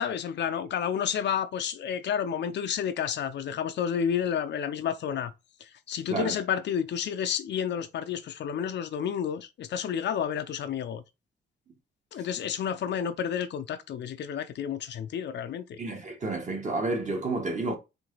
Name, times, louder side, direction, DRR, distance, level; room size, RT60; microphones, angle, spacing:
voice 1, 0.0-5.3 5.9-11.0 12.1-15.8, left 8 dB, 60° left, 0.6 m, -30 dB
voice 2, 15.8-17.8, right 2 dB, 35° right, 1.5 m, -30 dB
4.5 x 2.8 x 4.0 m
cardioid pair, 90°, 20 cm